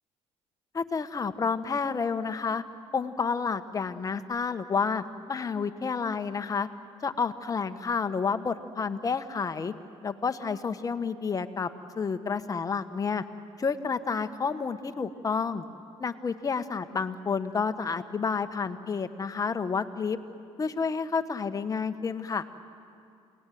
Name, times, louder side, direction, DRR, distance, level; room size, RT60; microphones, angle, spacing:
voice 1, 0.7-2.6 2.9-6.7 7.0-9.7 10.0-11.7 12.0-13.2 13.6-15.6 16.0-20.2 20.6-22.4, left 5 dB, 30° left, 9 dB, 1.2 m, -30 dB
29.0 x 19.0 x 9.3 m, 2.5 s
cardioid pair, 105°, 12 cm